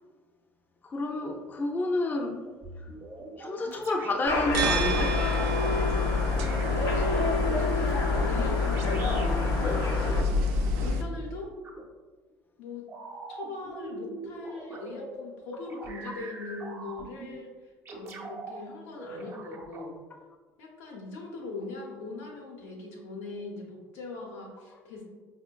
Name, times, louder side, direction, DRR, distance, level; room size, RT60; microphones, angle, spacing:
voice 1, 0.8-2.4 3.4-5.2, left 2 dB, 30° left, 1 dB, 0.5 m, -30 dB
sound 1, 2.6-5.6 6.4-10.4 11.6-11.8 12.9-15.2 15.7-17.4 17.8-18.6 19.0-19.9, right 3 dB, 40° right, 0.6 m, -42 dB
sound 2, 4.2-10.2, left 2 dB, 55° left, 0.8 m, -31 dB
sound 3, 4.5-11.0, left 2 dB, 80° right, 0.4 m, -27 dB
voice 2, 6.3-9.9 10.7-11.5 12.6-12.9 13.3-20.0 20.6-25.0, left 3 dB, 85° left, -1 dB, 0.8 m, -40 dB
4.8 x 2.1 x 2.2 m, 1.4 s
supercardioid pair, 85°, 7 cm